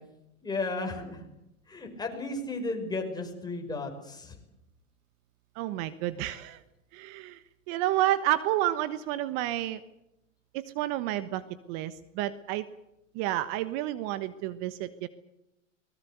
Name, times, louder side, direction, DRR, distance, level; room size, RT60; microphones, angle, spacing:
voice 1, 0.4-1.2 1.7-4.4, left 3 dB, 10° left, 2 dB, 5.8 m, -34 dB
voice 2, 5.6-6.6 6.9-7.4 7.7-9.8 10.5-11.4 11.7-12.7 13.1-15.1, right 14 dB, 50° right, 13 dB, 1.3 m, -30 dB
23.5 x 20.5 x 8.1 m, 0.88 s
hypercardioid pair, 120°, 39 cm